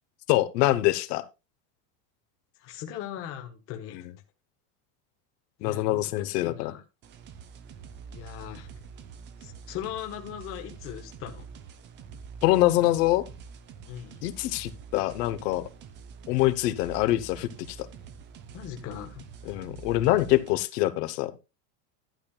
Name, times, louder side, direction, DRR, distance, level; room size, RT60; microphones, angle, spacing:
voice 1, 0.3-1.2 3.9-4.0 5.6-6.7 12.4-13.2 14.2-15.7 16.3-17.9 19.5-21.3, left 16 dB, 75° left, 1.0 m, -25 dB
voice 2, 2.6-4.0 5.6-6.8 8.1-8.7 9.4-11.5 13.9-14.3 18.5-19.3, left 10 dB, 30° left, 0.8 m, -39 dB
sound 1, 7.0-20.6, right 6 dB, 25° right, 0.5 m, -46 dB
11.5 x 10.0 x 2.3 m
cardioid pair, 170°, 47 cm